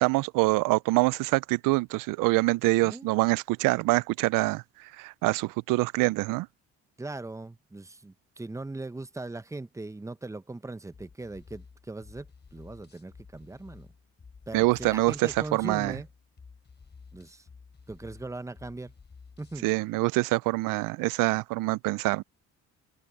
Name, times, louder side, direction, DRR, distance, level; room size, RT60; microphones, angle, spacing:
voice 1, 0.0-4.6 5.0-6.5 14.5-15.9 19.6-22.2, right 22 dB, 85° right, 0.5 m, -25 dB
voice 2, 2.8-3.2 7.0-13.9 14.5-16.1 17.1-17.5 17.9-18.9 19.4-19.7, right 2 dB, 10° right, 0.8 m, -39 dB
sound 1, 10.9-19.6, left 5 dB, 35° left, 4.0 m, -52 dB
cardioid pair, 85°, 31 cm